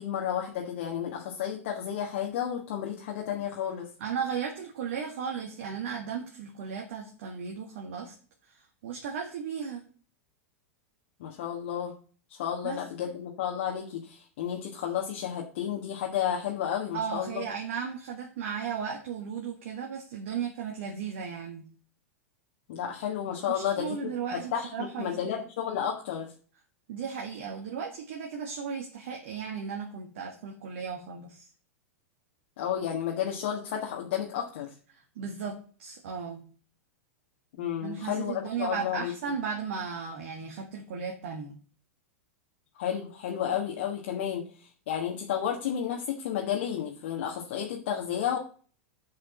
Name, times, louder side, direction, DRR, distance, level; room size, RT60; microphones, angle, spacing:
voice 1, 0.0-3.9 11.2-11.9 12.3-17.4 22.7-26.3 32.6-34.7 37.6-39.1 42.8-48.4, left 9 dB, 55° left, 0 dB, 1.5 m, -32 dB
voice 2, 4.0-8.1 8.5-9.8 12.6-12.8 16.9-21.6 23.5-25.2 26.9-31.5 34.9-36.4 37.8-41.5, right 6 dB, 55° right, 1 dB, 1.8 m, -35 dB
7.6 x 5.4 x 7.2 m, 0.41 s
figure-of-eight pair, 95°, 8 cm